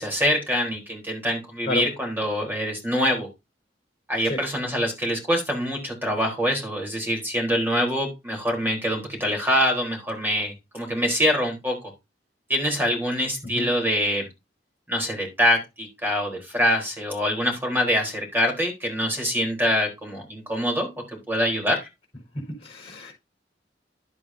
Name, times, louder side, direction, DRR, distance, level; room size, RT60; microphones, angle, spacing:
voice 1, 0.0-3.3 4.1-11.9 12.5-14.3 14.9-21.9, equal, 10° right, 4.1 m, -25 dB
voice 2, 22.3-23.1, left 2 dB, 35° left, 5.3 m, -31 dB
11.0 x 8.8 x 2.8 m
head